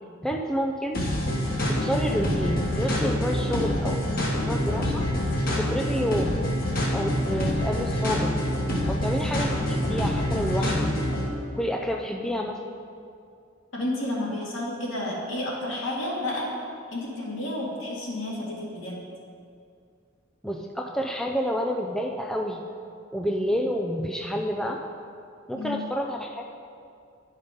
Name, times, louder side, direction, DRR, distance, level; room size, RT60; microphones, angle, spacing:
voice 1, 0.2-1.0 1.7-5.1 5.6-6.3 6.9-8.3 8.9-10.9 11.6-12.6 20.4-22.6 23.1-24.8 25.5-26.4, equal, 5° left, 1 dB, 0.4 m, -29 dB
sound 1, 0.9-11.3, left 1 dB, 45° left, 1.4 m, -26 dB
voice 2, 13.7-16.5 16.9-19.0 25.5-25.8, left 1 dB, 75° left, -4 dB, 2.2 m, -31 dB
11.0 x 5.5 x 5.1 m, 2.4 s
head